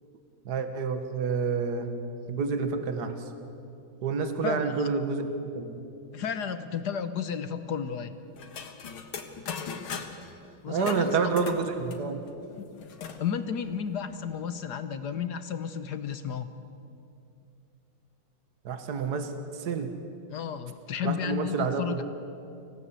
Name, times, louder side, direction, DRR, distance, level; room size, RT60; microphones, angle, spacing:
voice 1, 0.5-1.9 2.3-3.1 4.0-5.8 10.7-12.2 18.7-19.9 21.0-22.0, right 5 dB, 55° right, 7 dB, 2.0 m, -29 dB
voice 2, 4.4-4.9 6.1-8.1 10.6-11.2 12.6-12.7 13.2-16.5 20.3-22.0, left 7 dB, 60° left, 10 dB, 1.3 m, -33 dB
sound 1, 8.4-10.3 10.8-13.2 13.6-13.7 13.9-14.5, left 6 dB, 85° left, 2.3 m, -39 dB
25.5 x 17.0 x 8.2 m, 2.6 s
omnidirectional pair, 2.2 m